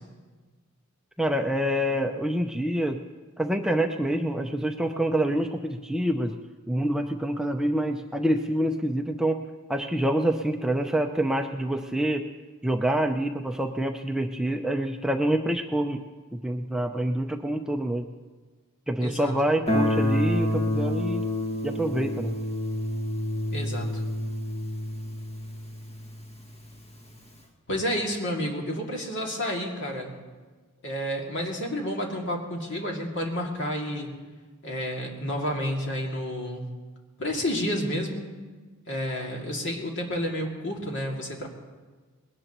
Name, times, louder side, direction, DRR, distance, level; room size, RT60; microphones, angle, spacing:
voice 1, 1.2-3.0 3.4-6.3 6.7-9.4 9.7-12.3 12.6-16.0 16.3-18.1 18.9-21.2 21.6-22.4, right 1 dB, 5° right, 3 dB, 0.5 m, -26 dB
voice 2, 19.0-19.4 23.5-24.0 27.7-30.1 30.8-34.1 34.6-36.6 37.2-38.2 38.9-41.5, equal, 55° left, 0 dB, 2.4 m, -30 dB
Guitar, 19.7-26.4, left 1 dB, 30° left, 1.9 m, -28 dB
20.5 x 17.5 x 3.0 m, 1.4 s
head